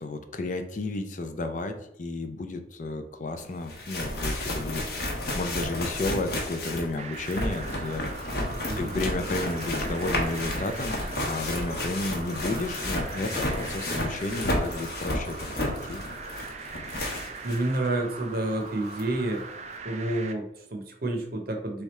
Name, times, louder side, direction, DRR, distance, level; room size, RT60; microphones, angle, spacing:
voice 1, 0.0-5.1 5.3-8.0 8.8-16.0, left 2 dB, 40° left, 7 dB, 0.5 m, -32 dB
sound 1, 3.4-3.5 3.7-17.8 18.2-18.3 19.0-19.1, left 1 dB, 55° left, 0.9 m, -32 dB
sound 2, 7.0-20.3, right 4 dB, 35° right, 0.3 m, -41 dB
voice 2, 8.7-9.0 17.4-19.5 19.8-21.8, right 2 dB, 50° right, 3 dB, 0.8 m, -29 dB
3.6 x 3.4 x 4.1 m, 0.79 s
head